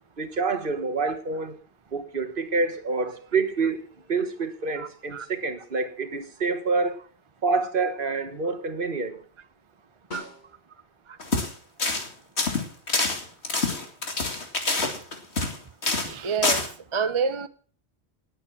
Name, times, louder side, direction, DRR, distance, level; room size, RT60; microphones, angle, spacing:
voice 1, 0.2-1.6 1.9-3.8 4.1-7.0 7.4-9.1, right 4 dB, 50° right, 1.5 m, -27 dB
voice 2, 4.8-5.3 10.1-10.2 11.1-11.2 16.0-16.6 16.9-17.5, right 5 dB, 30° right, 0.6 m, -28 dB
Snare drum, 10.1-11.0 15.5-15.6, left 2 dB, 40° left, 2.6 m, -42 dB
sound 1, 11.2-11.5 11.8-12.1 12.4-15.6 15.8-16.1 16.4-16.7, left 3 dB, 70° left, 2.6 m, -26 dB
19.0 x 8.5 x 5.9 m
omnidirectional pair, 1.1 m